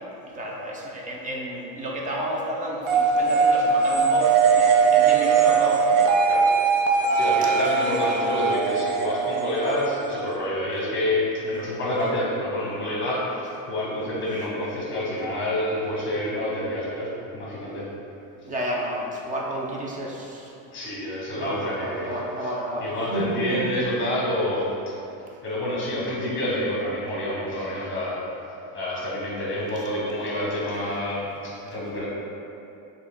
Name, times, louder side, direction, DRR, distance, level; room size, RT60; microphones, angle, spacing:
voice 1, 0.3-6.0 18.5-20.5 21.3-23.3 23.5-23.6, right 1 dB, 20° right, -2 dB, 0.5 m, -31 dB
sound 1, 2.9-10.4, right 5 dB, 60° right, 0.7 m, -20 dB
voice 2, 7.1-17.9 20.6-22.5 22.8-24.9 25.4-28.2 28.7-32.1, left 1 dB, 30° left, -5 dB, 1.3 m, -28 dB
5.9 x 2.5 x 3.5 m, 2.7 s
cardioid pair, 145°, 41 cm